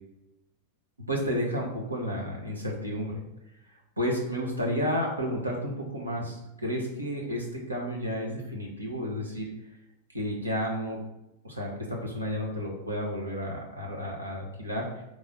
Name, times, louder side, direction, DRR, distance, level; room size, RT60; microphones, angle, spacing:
voice 1, 1.0-3.2 4.0-9.5 10.1-11.0 11.4-14.9, equal, 80° right, -1 dB, 1.1 m, -31 dB
4.1 x 3.2 x 4.0 m, 0.91 s
figure-of-eight pair, 90°, 0 cm